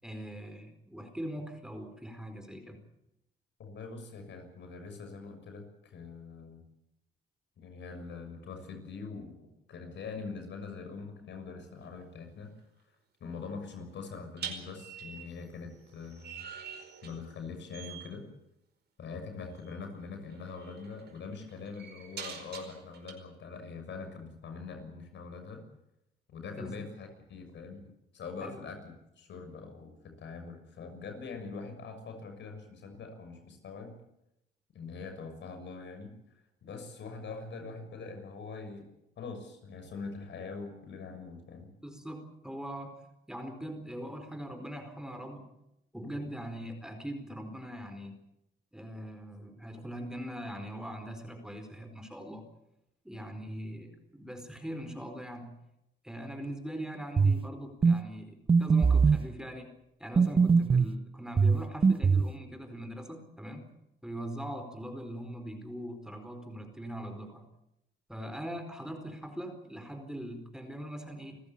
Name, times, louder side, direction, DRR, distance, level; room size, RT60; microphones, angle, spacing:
voice 1, 0.0-2.8 26.5-26.7 28.4-28.6 41.8-43.0 43.3-45.5 45.9-48.1 48.7-52.4 53.0-55.6 56.0-59.7 60.0-63.6 64.0-67.5 68.1-71.4, equal, 5° right, 7 dB, 4.5 m, -41 dB
voice 2, 3.6-6.6 7.6-12.5 13.2-16.5 17.0-18.2 19.0-25.6 26.3-34.0 34.7-36.1 36.6-38.8 39.2-41.7, left 4 dB, 65° left, 6 dB, 6.6 m, -43 dB
sound 1, 11.8-12.0 14.4-17.4 17.7-18.2 19.6-19.8 20.3-23.1, right 7 dB, 55° right, 5.0 m, -45 dB
sound 2, 57.2-57.4 57.8-58.0 58.5-59.2 60.2-60.9 61.4-62.3, right 5 dB, 25° right, 0.8 m, -22 dB
28.0 x 15.0 x 8.6 m, 0.85 s
cardioid pair, 90°, 20 cm